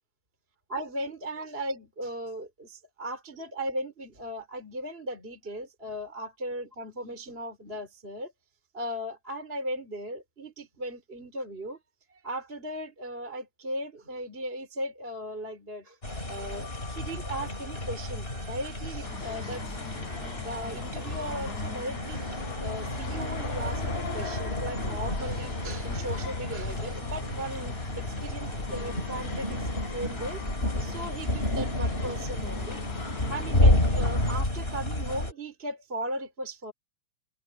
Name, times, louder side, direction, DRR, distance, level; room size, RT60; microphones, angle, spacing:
voice 1, 0.7-8.3 8.7-11.8 12.1-16.0 16.3-30.4 30.8-32.8 33.3-36.7, right 1 dB, 20° right, 4.0 m, -37 dB
sound 1, 16.0-35.3, left 1 dB, 15° left, 4.7 m, -30 dB
sound 2, 19.0-34.4, left 3 dB, 65° left, 6.4 m, -41 dB
omnidirectional pair, 3.6 m